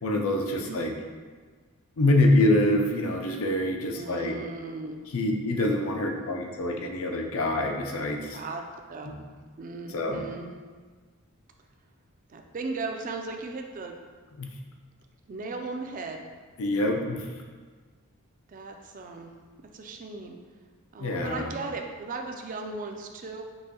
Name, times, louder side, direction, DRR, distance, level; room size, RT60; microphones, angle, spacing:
voice 1, 0.0-0.9 2.0-4.3 5.1-8.4 9.1-9.2 9.9-10.2 14.4-14.5 16.6-17.3 21.0-21.5, left 1 dB, 70° left, 2 dB, 0.5 m, -25 dB
voice 2, 3.9-5.0 8.3-8.6 8.9-9.2 9.6-10.5 12.3-14.0 15.3-16.3 18.5-19.3 19.7-20.4 20.9-23.4, right 3 dB, 35° right, 4 dB, 0.3 m, -37 dB
5.4 x 3.0 x 2.9 m, 1.5 s
head